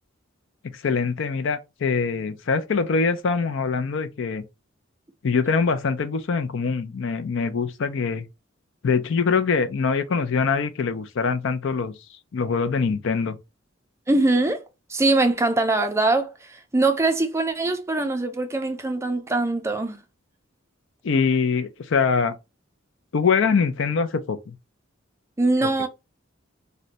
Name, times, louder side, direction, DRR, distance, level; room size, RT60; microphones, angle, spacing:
voice 1, 0.7-4.4 5.2-8.3 8.8-11.9 12.3-13.4 21.0-22.3 23.1-24.5 25.6-25.7, left 5 dB, 65° left, 0.5 m, -23 dB
voice 2, 14.1-14.6 14.9-20.0 25.4-25.9, right 2 dB, 15° right, 0.4 m, -22 dB
2.6 x 2.1 x 3.9 m
head